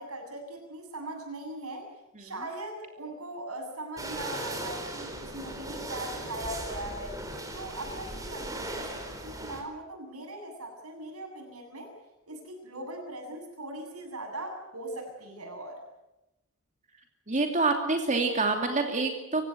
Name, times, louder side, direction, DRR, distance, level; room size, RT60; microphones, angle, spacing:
voice 1, 0.0-1.9 2.2-7.2 7.5-11.9 12.3-15.8, right 1 dB, 90° right, 3 dB, 7.9 m, -40 dB
sound 1, 4.0-9.6, right 1 dB, 15° right, 4.2 m, -38 dB
voice 2, 17.3-19.4, right 3 dB, 35° right, 3 dB, 2.7 m, -26 dB
27.0 x 16.0 x 9.4 m, 0.96 s
head